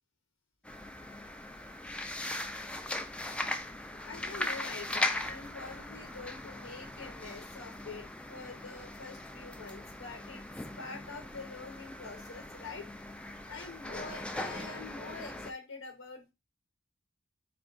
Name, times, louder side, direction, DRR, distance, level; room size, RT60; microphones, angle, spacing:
sound 1, 0.6-15.5, left 2 dB, 5° left, 0.4 m, -39 dB
voice 1, 4.0-10.4 10.8-12.9 13.5-16.3, left 4 dB, 70° left, 0.8 m, -45 dB
4.6 x 2.3 x 3.8 m
head